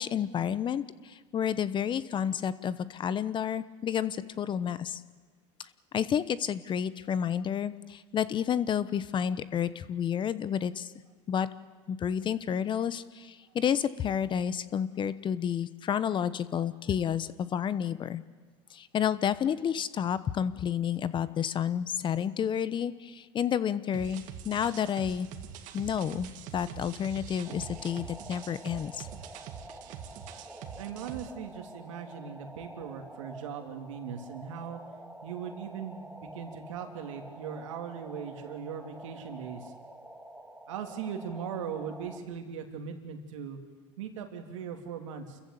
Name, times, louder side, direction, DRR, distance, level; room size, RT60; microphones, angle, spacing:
voice 1, 0.0-5.0 5.9-10.9 11.3-11.5 11.9-18.2 18.7-25.3 25.7-29.1, left 8 dB, 30° left, 15 dB, 1.0 m, -30 dB
sound 1, 23.9-31.3, right 8 dB, 55° right, 2.1 m, -44 dB
sound 2, 27.4-42.2, right 1 dB, 5° right, 2.2 m, -48 dB
voice 2, 30.8-34.8 35.2-39.7 40.7-43.6 44.0-45.4, right 7 dB, 90° right, 4 dB, 3.1 m, -39 dB
29.0 x 14.5 x 8.3 m, 1.5 s
supercardioid pair, 115°, 16 cm